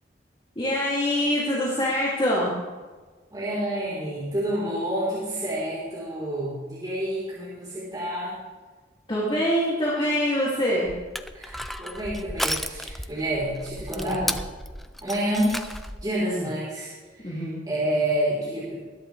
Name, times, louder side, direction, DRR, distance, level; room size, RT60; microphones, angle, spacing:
voice 1, 0.6-2.5 9.1-10.9 13.9-14.3 16.2-16.5 17.2-17.6, equal, 30° left, -7 dB, 2.6 m, -25 dB
voice 2, 3.3-8.4 11.3-14.2 15.0-15.7 16.0-16.9 17.2-18.7, right 1 dB, 25° right, -9 dB, 4.1 m, -28 dB
Crushing, 10.9-16.1, equal, ahead, 0.4 m, -34 dB
21.0 x 11.5 x 3.4 m, 1.4 s
head